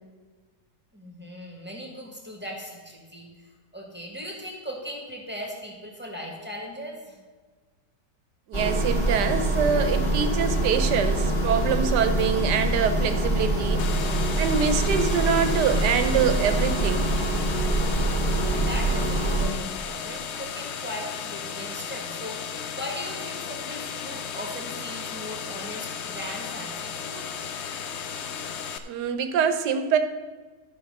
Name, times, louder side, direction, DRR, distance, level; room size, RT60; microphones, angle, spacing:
voice 1, 0.9-7.2 18.6-27.3, equal, 5° right, -1 dB, 1.5 m, -38 dB
sound 1, 8.5-19.5, right 1 dB, 15° left, 1.9 m, -25 dB
voice 2, 8.5-13.8 14.4-17.1 28.8-30.0, right 7 dB, 75° right, 9 dB, 1.3 m, -25 dB
sound 2, 13.8-28.8, left 7 dB, 85° left, 0.6 m, -35 dB
12.5 x 5.6 x 5.3 m, 1.4 s
omnidirectional pair, 1.9 m